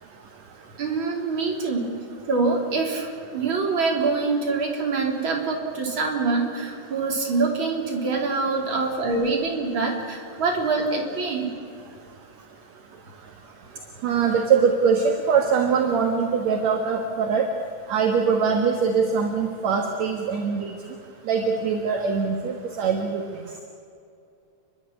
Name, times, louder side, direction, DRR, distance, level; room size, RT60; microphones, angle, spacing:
voice 1, 0.8-1.9 2.3-11.5, right 3 dB, 40° right, 0 dB, 4.2 m, -25 dB
voice 2, 14.0-17.5 17.9-20.7 21.3-23.2, right 6 dB, 65° right, 3 dB, 2.6 m, -22 dB
30.0 x 11.5 x 9.9 m, 2.5 s
omnidirectional pair, 3.5 m